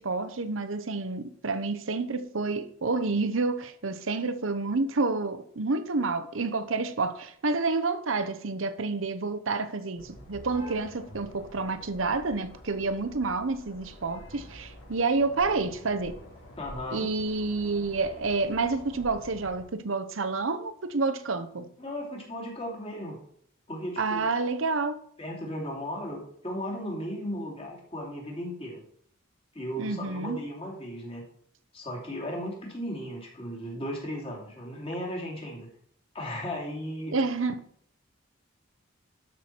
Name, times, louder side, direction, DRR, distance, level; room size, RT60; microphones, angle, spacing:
voice 1, 0.0-16.2 16.9-21.7 24.0-25.0 29.8-30.4 37.1-37.6, right 3 dB, 75° right, 0.9 m, -29 dB
sound 1, 10.0-19.6, equal, 85° left, 4.3 m, -47 dB
voice 2, 16.6-17.1 21.8-23.2 23.7-24.3 25.2-28.8 29.5-31.3 31.7-35.7 36.1-37.2, equal, 30° left, 2.7 m, -36 dB
12.5 x 5.9 x 4.5 m
head